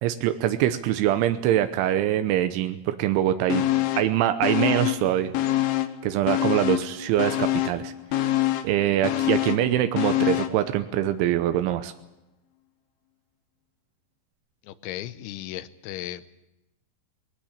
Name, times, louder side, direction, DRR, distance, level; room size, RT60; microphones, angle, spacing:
voice 1, 0.0-3.6 4.0-5.3 6.0-7.9 8.6-11.9, right 12 dB, 85° right, 9 dB, 3.3 m, -24 dB
sound 1, 3.5-4.2 4.4-6.0 6.3-10.6 11.0-11.1, left 15 dB, 70° left, 2.8 m, -25 dB
voice 2, 14.6-16.3, left 13 dB, 85° left, 14 dB, 3.3 m, -36 dB
20.5 x 18.5 x 8.7 m, 0.95 s
omnidirectional pair, 5.3 m